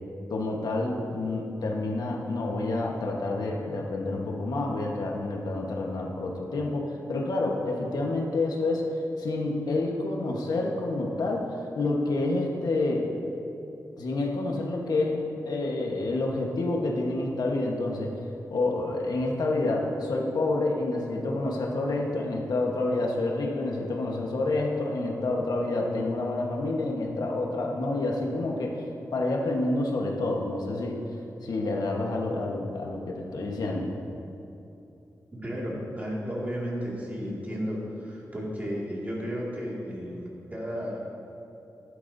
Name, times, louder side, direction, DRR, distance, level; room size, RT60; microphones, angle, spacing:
voice 1, 0.3-13.1 14.0-18.2 18.5-31.0 31.4-33.9, left 2 dB, 80° left, 0 dB, 1.3 m, -28 dB
voice 2, 35.4-41.1, equal, 25° right, -5 dB, 2.2 m, -33 dB
13.0 x 11.5 x 2.7 m, 2.9 s
wide cardioid pair, 145°, 7 cm